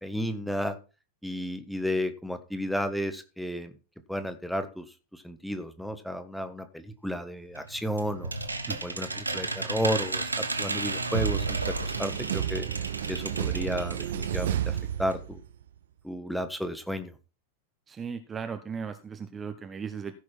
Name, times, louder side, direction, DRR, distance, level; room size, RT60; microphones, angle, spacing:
voice 1, 0.0-0.7 1.2-3.7 4.1-4.9 5.1-8.3 8.8-12.7 13.1-15.4 16.0-17.1, equal, ahead, 9 dB, 1.4 m, -32 dB
sound 1, 7.5-14.4 14.8-14.9 15.1-15.2, right 3 dB, 80° right, 1.2 m, -34 dB
sound 2, 11.1-15.6, right 10 dB, 60° right, 0.7 m, -31 dB
voice 2, 17.9-20.1, right 6 dB, 20° right, 8 dB, 1.0 m, -36 dB
15.5 x 6.3 x 4.5 m, 0.33 s
figure-of-eight pair, 90°, 0 cm